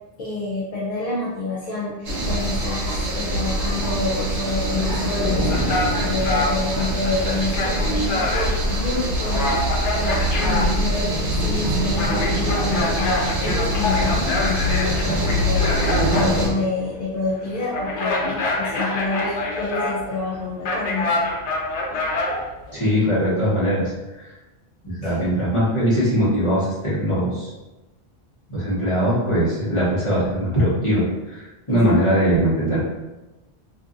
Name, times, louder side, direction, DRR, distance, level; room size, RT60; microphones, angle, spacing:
voice 1, 0.2-21.1 25.0-25.2 31.8-31.9, left 3 dB, 50° left, -7 dB, 0.5 m, -28 dB
sound 1, 2.0-16.5, equal, 80° right, 1.1 m, -23 dB
sound 2, 5.5-22.7, left 2 dB, 85° left, 0.9 m, -26 dB
voice 2, 22.7-24.2 24.8-27.5 28.5-31.1 31.3-32.8, equal, 30° left, -8 dB, 1.0 m, -21 dB
2.6 x 2.6 x 2.5 m, 1.1 s
omnidirectional pair, 1.2 m